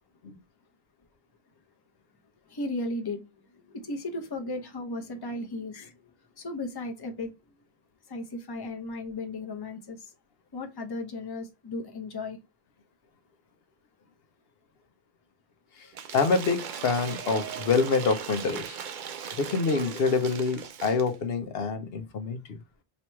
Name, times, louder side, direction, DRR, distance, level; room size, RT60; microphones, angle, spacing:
voice 1, 2.5-3.2 3.5-5.9 6.4-7.3 8.1-10.1 10.5-12.4, left 2 dB, 25° left, 0.7 m, -35 dB
Cheering / Applause / Crowd, 15.9-21.2, right 7 dB, 60° right, 0.6 m, -38 dB
voice 2, 16.1-18.8 19.4-22.4, left 4 dB, 75° left, 0.9 m, -26 dB
3.0 x 3.0 x 4.4 m
omnidirectional pair, 1.0 m